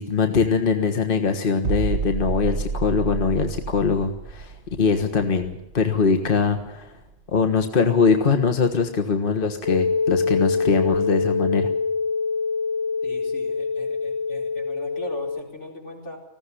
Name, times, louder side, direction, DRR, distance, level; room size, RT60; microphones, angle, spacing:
voice 1, 0.0-6.9 7.3-11.7, left 5 dB, 50° left, 6 dB, 1.5 m, -22 dB
sound 1, 1.6-7.3 7.6-7.8, right 4 dB, 75° right, 1.2 m, -30 dB
sound 2, 9.6-15.4, left 4 dB, 20° left, 0.9 m, -25 dB
voice 2, 13.0-16.2, equal, 85° left, 0 dB, 5.0 m, -39 dB
19.5 x 15.0 x 9.9 m, 0.94 s
omnidirectional pair, 1.2 m